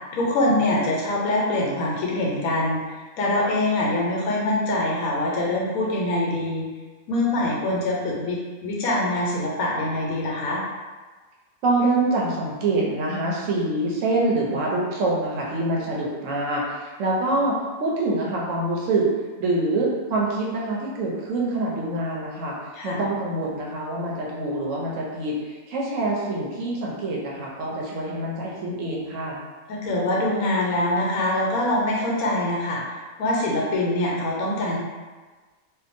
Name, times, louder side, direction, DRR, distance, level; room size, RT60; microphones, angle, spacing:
voice 1, 0.1-2.8 3.2-6.7 7.1-10.6 22.8-23.0 29.7-32.8 33.2-34.8, left 1 dB, 90° left, -3 dB, 1.1 m, -24 dB
voice 2, 11.6-19.1 19.4-22.6 22.8-29.4, right 2 dB, 70° right, -3 dB, 0.9 m, -25 dB
2.7 x 2.3 x 2.5 m, 1.3 s
omnidirectional pair, 1.5 m